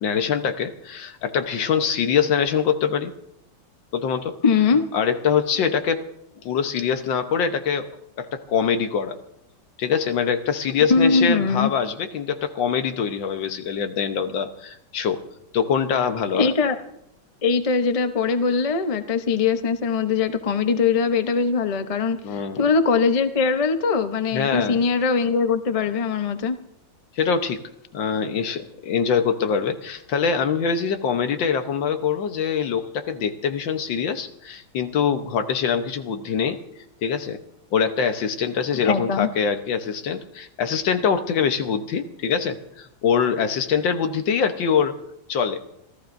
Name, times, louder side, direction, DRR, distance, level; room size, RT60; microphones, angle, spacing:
voice 1, 0.0-3.1 3.9-4.4 4.9-6.0 6.4-7.9 8.2-9.2 9.8-15.2 15.5-16.5 22.2-22.6 24.3-24.8 27.2-27.6 27.9-36.6 37.0-37.4 37.7-45.0 45.3-45.6, left 6 dB, 75° left, 8 dB, 1.8 m, -24 dB
voice 2, 4.4-4.8 10.9-11.7 16.3-16.8 17.4-22.2 22.6-26.6 38.8-39.3, left 5 dB, 40° left, 8 dB, 0.5 m, -21 dB
26.5 x 14.5 x 2.6 m, 0.78 s
omnidirectional pair, 2.0 m